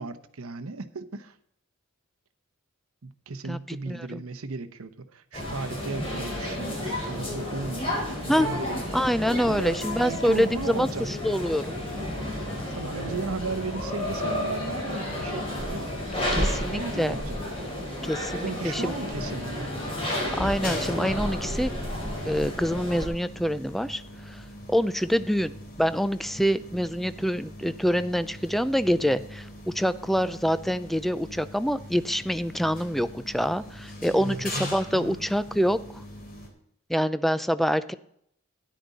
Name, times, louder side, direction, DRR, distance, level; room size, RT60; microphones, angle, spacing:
voice 1, 0.0-1.4 3.0-9.0 9.5-11.4 12.7-15.9 16.3-17.7 18.3-19.8 34.1-35.2, right 3 dB, 70° right, 9 dB, 0.9 m, -36 dB
voice 2, 3.5-4.2 8.3-8.5 8.9-11.8 16.3-17.2 18.0-18.9 20.3-21.7 22.3-25.5 25.8-36.0 36.9-37.9, equal, ahead, 13 dB, 0.4 m, -26 dB
sound 1, 5.3-23.1, left 1 dB, 25° left, 4.3 m, -31 dB
sound 2, 20.4-36.5, left 1 dB, 40° left, 3.2 m, -42 dB
13.0 x 10.5 x 4.0 m, 0.71 s
head